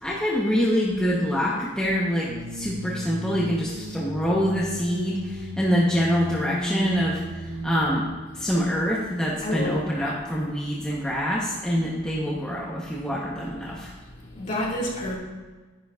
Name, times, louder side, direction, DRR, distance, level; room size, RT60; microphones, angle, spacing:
voice 1, 0.0-13.9, equal, 5° left, -6 dB, 1.1 m, -25 dB
sound 1, 2.3-8.1, equal, 70° right, 1.4 m, -34 dB
voice 2, 9.4-10.2 14.3-15.1, left 1 dB, 40° left, -4 dB, 2.4 m, -29 dB
11.0 x 10.5 x 2.6 m, 1.2 s
head